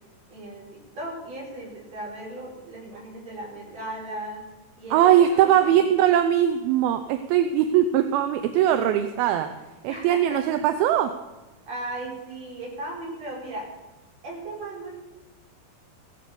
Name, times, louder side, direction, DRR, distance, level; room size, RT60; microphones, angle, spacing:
voice 1, 0.3-4.4 4.8-5.8 9.9-10.4 11.7-13.7 14.2-15.1, right 1 dB, 45° right, -3 dB, 6.5 m, -37 dB
voice 2, 4.9-9.5 9.8-11.1, right 10 dB, 80° right, 8 dB, 2.7 m, -20 dB
16.0 x 11.5 x 6.9 m, 1.1 s
omnidirectional pair, 4.4 m